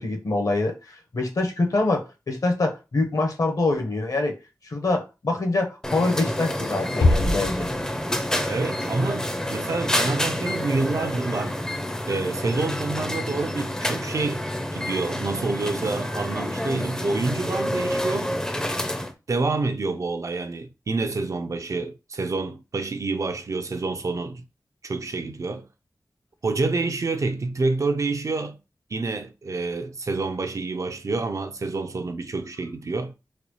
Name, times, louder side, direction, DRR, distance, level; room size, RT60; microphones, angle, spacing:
voice 1, 0.0-4.3 4.6-7.7, left 2 dB, 60° left, 1.0 m, -25 dB
sound 1, 5.8-19.1, left 1 dB, 10° left, 0.5 m, -28 dB
Bass drum, 7.0-8.4, left 2 dB, 85° left, 0.8 m, -23 dB
voice 2, 8.3-11.6 12.1-14.4 14.7-18.3 19.3-24.4 24.8-25.7 26.4-28.6 28.9-33.1, right 3 dB, 55° right, 0.4 m, -28 dB
4.1 x 2.3 x 3.0 m
wide cardioid pair, 75°, 7 cm